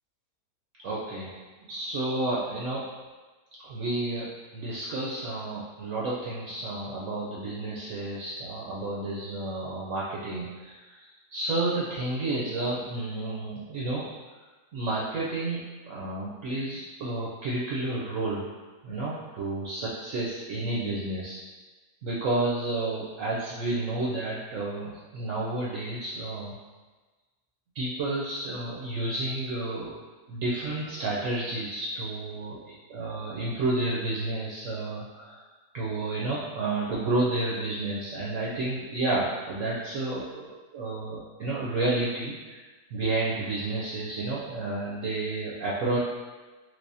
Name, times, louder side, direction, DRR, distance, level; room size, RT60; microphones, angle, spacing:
voice 1, 0.8-1.4 1.7-2.9 3.6-4.3 4.5-14.0 14.7-15.6 15.9-18.5 18.8-21.4 22.0-26.5 27.7-29.9 30.3-35.4 35.7-42.5 42.9-46.0, right 2 dB, 70° right, -6 dB, 0.9 m, -31 dB
3.4 x 3.1 x 2.6 m, 1.3 s
omnidirectional pair, 1.6 m